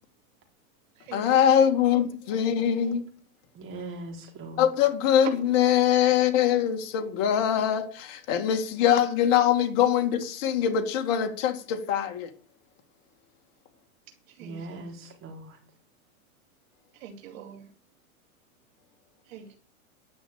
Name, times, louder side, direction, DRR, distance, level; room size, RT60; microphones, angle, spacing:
voice 1, 1.1-3.0 4.6-12.3, left 9 dB, 45° left, 2.1 m, -23 dB
voice 2, 3.5-4.7 14.4-15.6, right 2 dB, 30° right, 4.2 m, -40 dB
voice 3, 14.3-14.8 16.9-17.7 19.3-19.6, right 10 dB, 65° right, 2.9 m, -42 dB
11.0 x 6.2 x 8.6 m
hypercardioid pair, 135°, 43 cm